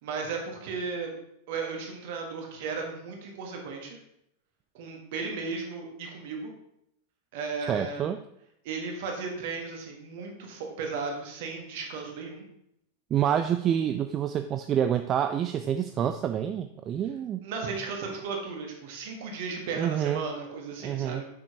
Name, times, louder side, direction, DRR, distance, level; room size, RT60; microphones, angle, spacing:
voice 1, 0.0-1.1 1.5-4.0 4.7-6.5 7.3-8.1 8.6-12.4 17.4-21.2, right 4 dB, 50° right, 1 dB, 1.5 m, -35 dB
voice 2, 7.7-8.2 13.1-17.4 19.8-20.2 20.8-21.2, right 9 dB, 30° right, 8 dB, 0.3 m, -27 dB
6.9 x 6.0 x 2.9 m, 0.77 s
figure-of-eight pair, 90°, 0 cm